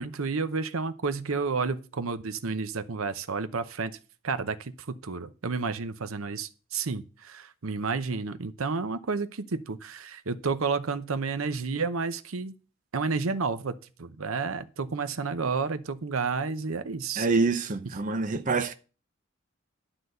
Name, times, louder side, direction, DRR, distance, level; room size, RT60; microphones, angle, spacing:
voice 1, 0.0-3.9 4.2-4.7 5.0-12.5 12.9-17.3, right 4 dB, 90° right, 0.8 m, -31 dB
voice 2, 17.2-18.7, right 4 dB, 40° right, 0.6 m, -26 dB
11.5 x 4.0 x 7.9 m
head